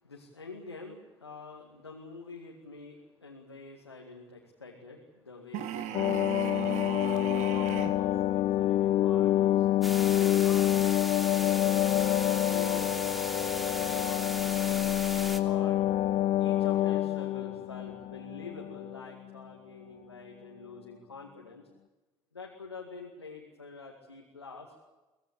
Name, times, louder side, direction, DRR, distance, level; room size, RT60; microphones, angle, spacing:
voice 1, 0.0-10.7 12.2-15.8 16.4-21.7 22.3-24.7, left 4 dB, 90° left, 0 dB, 2.2 m, -47 dB
sound 1, 5.5-8.0, right 12 dB, 60° right, 1.8 m, -37 dB
sound 2, 5.9-19.0 19.3-19.4, left 13 dB, 50° left, 0.9 m, -27 dB
sound 3, 9.8-15.4, equal, ahead, 3.2 m, -38 dB
24.5 x 18.0 x 8.4 m, 1.1 s
figure-of-eight pair, 50°, 13 cm